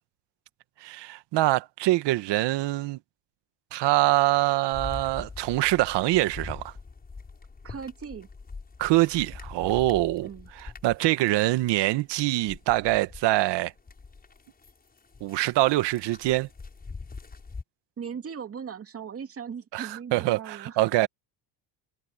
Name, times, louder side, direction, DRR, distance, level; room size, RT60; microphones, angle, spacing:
voice 1, 0.8-3.0 3.7-6.7 8.8-10.3 10.6-13.7 15.2-16.5 19.7-21.1, right 17 dB, 65° right, 1.4 m, -24 dB
sound 1, 4.7-13.3 13.7-17.6, left 4 dB, 20° left, 7.4 m, -43 dB
voice 2, 7.6-8.3 10.2-10.5 18.0-20.8, right 7 dB, 30° right, 2.5 m, -38 dB
cardioid pair, 125°, 45 cm